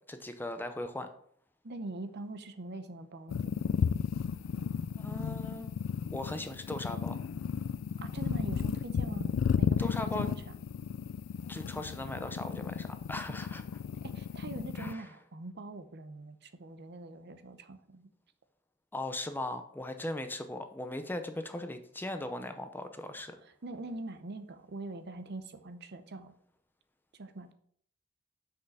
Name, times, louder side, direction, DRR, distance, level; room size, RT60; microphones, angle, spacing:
voice 1, 0.1-1.1 5.0-5.7 6.1-7.2 9.8-10.3 11.5-13.6 14.7-15.1 18.9-23.4, left 1 dB, 10° left, 8 dB, 0.6 m, -38 dB
voice 2, 1.6-3.4 8.0-10.4 14.0-18.1 23.4-26.3 27.1-27.5, right 2 dB, 55° right, 10 dB, 0.7 m, -43 dB
sound 1, 3.3-14.9, left 7 dB, 70° left, 0.3 m, -33 dB
6.5 x 5.4 x 5.5 m, 0.64 s
head